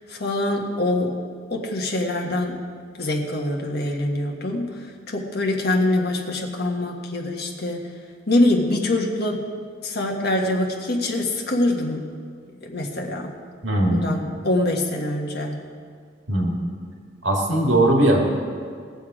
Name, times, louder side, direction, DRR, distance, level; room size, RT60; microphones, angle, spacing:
voice 1, 0.1-1.2 1.5-2.6 3.0-4.6 5.1-7.8 8.3-9.4 9.8-12.0 12.6-13.3 13.9-15.6, left 1 dB, 55° left, 1 dB, 1.5 m, -24 dB
voice 2, 13.6-14.0 16.3-16.6 17.2-18.3, right 1 dB, 75° right, 0 dB, 2.0 m, -19 dB
19.5 x 7.2 x 4.9 m, 2.1 s
head